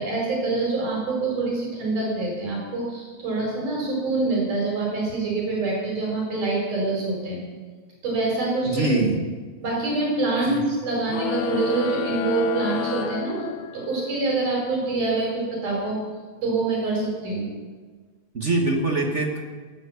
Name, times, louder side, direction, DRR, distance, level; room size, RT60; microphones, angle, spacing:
voice 1, 0.0-7.4 8.0-9.0 9.6-13.5 13.7-16.0 16.4-17.5, right 3 dB, 80° right, -3 dB, 5.6 m, -25 dB
voice 2, 8.7-9.2 10.4-10.6 18.3-19.4, right 2 dB, 50° right, 1 dB, 0.8 m, -23 dB
sound 1, 11.1-14.1, left 9 dB, 75° left, 2.1 m, -30 dB
15.5 x 11.5 x 6.9 m, 1.5 s
omnidirectional pair, 3.5 m